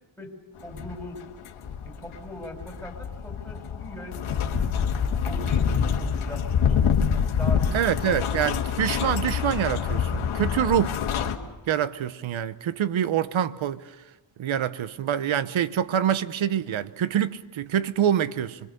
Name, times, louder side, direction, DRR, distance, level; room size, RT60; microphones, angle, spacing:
voice 1, 0.2-1.2 1.8-4.8 5.2-6.8 7.4-8.1, equal, ahead, 4.5 m, -40 dB
sound 1, 0.7-11.4, left 7 dB, 85° left, 1.7 m, -26 dB
voice 2, 7.7-11.0 11.7-13.8 14.4-18.6, right 9 dB, 70° right, 1.0 m, -25 dB
26.5 x 22.0 x 6.8 m
cardioid pair, 85°, 48 cm